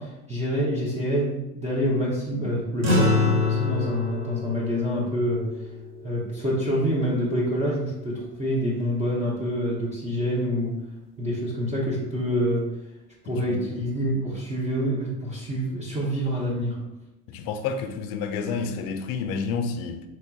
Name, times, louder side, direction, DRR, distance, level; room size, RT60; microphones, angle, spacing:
voice 1, 0.0-5.5 6.0-10.7 11.2-12.7 13.2-16.8, equal, 15° right, -5 dB, 0.8 m, -26 dB
sound 1, 2.8-7.5, left 3 dB, 35° right, 1.3 m, -27 dB
voice 2, 17.3-20.0, left 5 dB, 45° left, 8 dB, 0.5 m, -29 dB
4.3 x 3.0 x 2.3 m, 0.99 s
hypercardioid pair, 80°, 48 cm